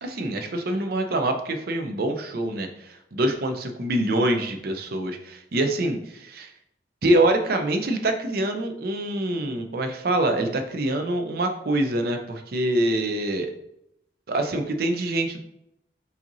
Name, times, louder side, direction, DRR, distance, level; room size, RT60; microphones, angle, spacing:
voice 1, 0.0-6.5 7.0-13.5 14.3-15.4, right 1 dB, 55° right, 6 dB, 0.5 m, -25 dB
5.6 x 2.6 x 2.6 m, 0.80 s
head